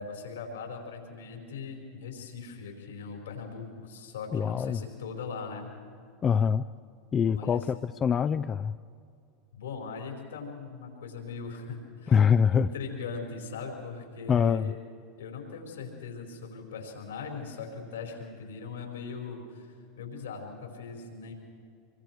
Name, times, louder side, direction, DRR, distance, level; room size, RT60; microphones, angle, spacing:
voice 1, 0.0-5.7 7.3-7.6 9.5-12.2 12.5-14.7 15.2-21.3, left 5 dB, 85° left, 1 dB, 4.9 m, -40 dB
voice 2, 4.3-4.8 6.2-6.6 7.1-8.8 12.1-12.7 14.3-14.7, left 7 dB, 30° left, 11 dB, 0.5 m, -24 dB
25.5 x 23.5 x 4.7 m, 2.3 s
hypercardioid pair, 90°, 0 cm